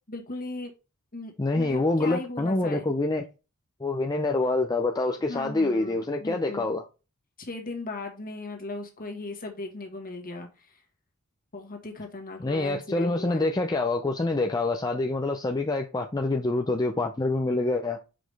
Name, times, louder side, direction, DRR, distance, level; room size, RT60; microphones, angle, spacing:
voice 1, 0.1-0.7 1.1-2.9 5.3-6.7 7.4-10.8 11.5-13.5, left 2 dB, 40° left, 1.7 m, -38 dB
voice 2, 1.4-3.2 3.8-6.8 12.4-18.0, left 2 dB, 20° left, 0.5 m, -26 dB
5.8 x 5.1 x 3.4 m
head